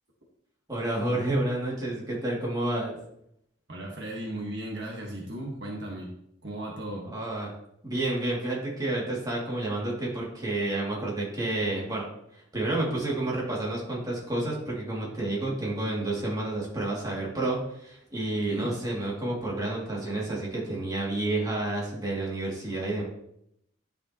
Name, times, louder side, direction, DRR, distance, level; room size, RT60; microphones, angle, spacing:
voice 1, 0.7-3.0 7.0-7.5 7.8-12.1 12.3-23.0, right 2 dB, 20° right, -4 dB, 2.5 m, -30 dB
voice 2, 3.7-6.1 6.4-7.1 18.5-18.7, right 1 dB, 60° right, -1 dB, 1.5 m, -36 dB
10.5 x 6.7 x 3.0 m, 0.75 s
head